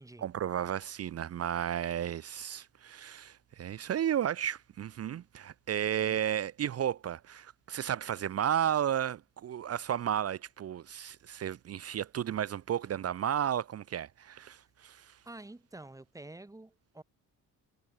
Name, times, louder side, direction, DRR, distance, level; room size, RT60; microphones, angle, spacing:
voice 1, 0.2-15.2, right 10 dB, 45° right, 0.7 m, -33 dB
voice 2, 15.2-17.0, right 2 dB, 10° right, 4.8 m, -48 dB
wide cardioid pair, 175°, 35 cm